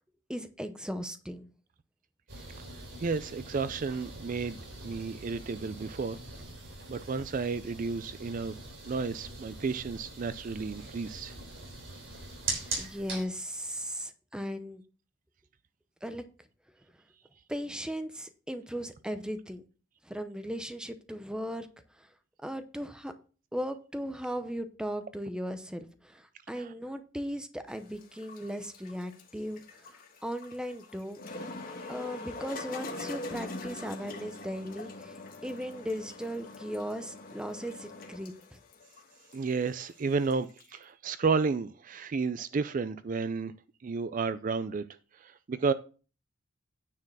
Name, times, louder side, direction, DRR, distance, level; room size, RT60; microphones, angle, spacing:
voice 1, 0.3-1.5 12.8-14.8 16.0-16.2 17.5-19.6 20.0-21.7 22.0-22.1 22.4-23.1 23.5-31.2 31.9-35.2 35.4-38.6, equal, 5° right, 0.7 m, -37 dB
sound 1, 2.3-13.3, right 2 dB, 75° right, 3.3 m, -42 dB
voice 2, 2.7-4.6 4.8-6.2 6.9-8.5 8.9-11.3 26.6-26.7 31.8-31.9 39.3-43.5 43.8-44.9 45.1-45.7, right 4 dB, 45° right, 0.4 m, -32 dB
sound 2, 27.7-40.8, left 2 dB, 45° left, 1.6 m, -44 dB
9.6 x 4.5 x 6.1 m
head